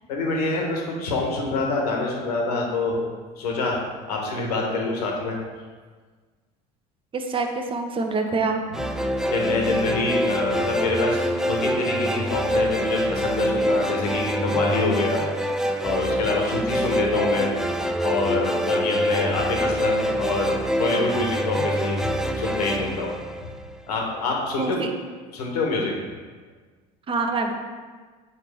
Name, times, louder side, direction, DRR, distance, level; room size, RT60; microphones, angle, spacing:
voice 1, 0.1-3.0 3.4-5.4 9.3-15.2 15.8-17.5 18.0-23.1 23.9-24.8 25.3-25.9, left 3 dB, 85° left, 0 dB, 1.2 m, -26 dB
voice 2, 7.1-8.6 24.6-24.9 27.1-27.5, right 3 dB, 25° right, 4 dB, 0.8 m, -25 dB
sound 1, 8.7-24.0, equal, 5° right, 0.4 m, -25 dB
7.1 x 4.1 x 3.4 m, 1.5 s
hypercardioid pair, 85°, 19 cm